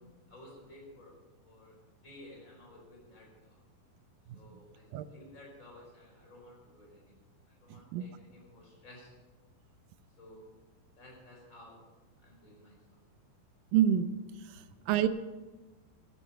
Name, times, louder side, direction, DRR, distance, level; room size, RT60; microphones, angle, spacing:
voice 1, 0.3-1.1 1.4-1.8 2.0-3.6 4.3-9.2 10.2-10.4 11.0-11.8 12.2-12.8 14.5-14.8, left 1 dB, 20° left, -2 dB, 4.9 m, -54 dB
voice 2, 13.7-14.1 14.4-15.1, right 10 dB, 80° right, 12 dB, 2.4 m, -28 dB
14.0 x 10.5 x 5.8 m, 1.2 s
omnidirectional pair, 4.1 m